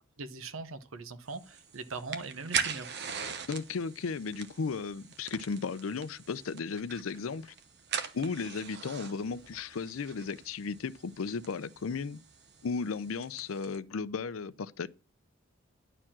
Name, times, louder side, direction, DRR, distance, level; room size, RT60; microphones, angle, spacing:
voice 1, 0.2-3.0, right 3 dB, 80° right, 0.9 m, -41 dB
sound 1, 1.3-13.8, right 6 dB, 55° right, 1.0 m, -41 dB
voice 2, 3.5-7.5 8.1-12.2 12.6-14.9, left 5 dB, 90° left, 0.5 m, -35 dB
11.0 x 4.5 x 7.3 m
head